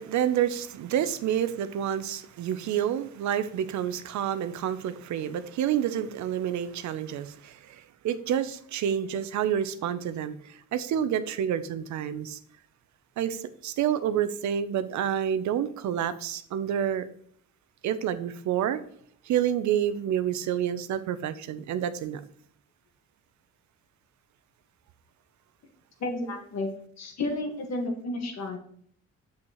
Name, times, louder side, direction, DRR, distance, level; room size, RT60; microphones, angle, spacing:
voice 1, 0.0-12.4 13.2-17.1 17.8-18.8 19.2-22.2, right 9 dB, 70° right, 0.6 m, -29 dB
voice 2, 26.0-26.7 27.0-28.6, left 2 dB, 60° left, 1.7 m, -31 dB
7.2 x 6.2 x 3.0 m
cardioid pair, 90°, 30 cm